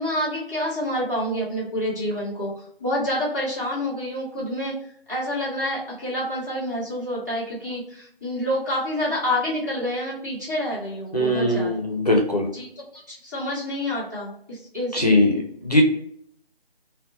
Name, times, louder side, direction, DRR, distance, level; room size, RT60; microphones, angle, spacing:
voice 1, 0.0-4.7 5.1-11.7 12.5-15.2, equal, 20° right, -8 dB, 0.6 m, -28 dB
voice 2, 11.1-12.5 14.9-15.4 15.6-15.8, left 1 dB, 40° left, 0 dB, 0.4 m, -20 dB
2.5 x 2.1 x 2.6 m, 0.68 s
figure-of-eight pair, 165°, 30 cm